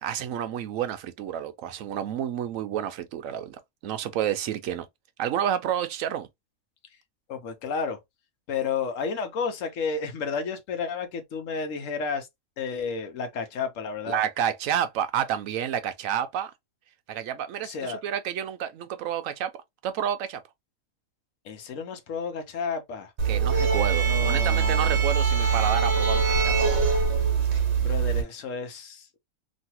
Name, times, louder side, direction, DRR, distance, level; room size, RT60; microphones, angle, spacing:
voice 1, 0.0-3.6 3.8-4.9 5.2-6.3 14.1-16.5 17.1-19.5 19.8-20.4 23.2-26.8, right 9 dB, 75° right, 1.0 m, -30 dB
voice 2, 7.3-8.0 8.5-12.3 12.6-14.2 17.6-18.0 21.4-23.1 24.0-25.0 27.8-29.2, left 5 dB, 70° left, 1.2 m, -32 dB
sound 1, 23.2-28.2, right 6 dB, 55° right, 1.2 m, -23 dB
3.1 x 2.6 x 2.8 m
omnidirectional pair, 1.4 m